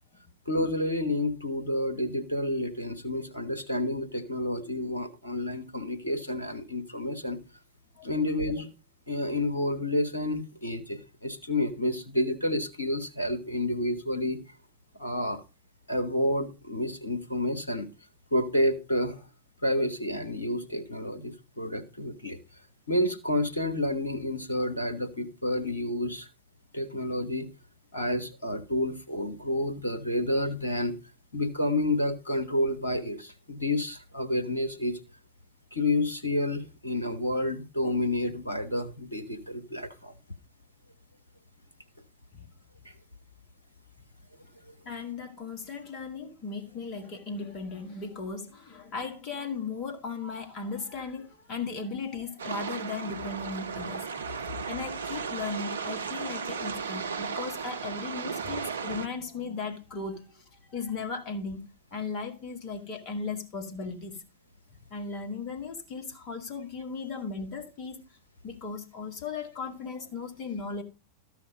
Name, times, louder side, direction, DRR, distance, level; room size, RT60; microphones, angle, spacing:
voice 1, 0.5-7.4 8.0-8.7 9.1-14.4 15.0-15.4 15.9-17.9 18.3-19.2 19.6-22.4 22.9-26.3 26.7-27.5 27.9-31.0 31.3-35.0 35.7-40.1 42.8-42.9, left 1 dB, 75° left, 1.3 m, -29 dB
voice 2, 44.8-60.4 60.7-64.2 64.9-68.0 68.4-70.8, left 4 dB, 35° left, 2.2 m, -37 dB
sound 1, 52.4-59.1, right 6 dB, 70° right, 0.6 m, -35 dB
13.5 x 5.8 x 5.1 m
figure-of-eight pair, 90°, 0 cm